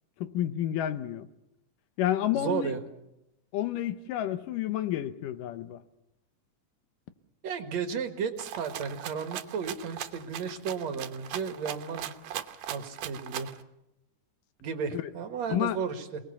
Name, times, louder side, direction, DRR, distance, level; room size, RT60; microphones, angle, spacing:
voice 1, 0.2-1.3 2.0-2.7 3.5-5.8 14.9-15.0 15.5-15.8, left 12 dB, 85° left, 11 dB, 2.6 m, -30 dB
voice 2, 2.3-2.8 7.4-12.1 12.7-13.5 14.6-16.2, right 6 dB, 60° right, 7 dB, 2.6 m, -33 dB
Rattle (instrument), 8.4-13.6, right 11 dB, 80° right, 2.6 m, -39 dB
28.5 x 19.5 x 7.0 m, 0.89 s
omnidirectional pair, 3.7 m